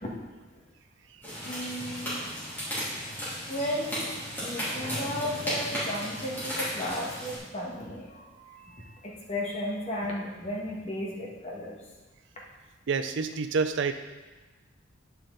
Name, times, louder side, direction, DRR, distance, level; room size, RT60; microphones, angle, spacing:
sound 1, 1.2-7.4, equal, 10° left, 2.9 m, -34 dB
voice 1, 1.4-2.3 3.5-4.1 4.4-11.8, left 1 dB, 35° left, -3 dB, 1.5 m, -34 dB
voice 2, 12.9-13.9, right 5 dB, 65° right, 9 dB, 0.4 m, -27 dB
9.7 x 5.9 x 3.9 m, 1.3 s
head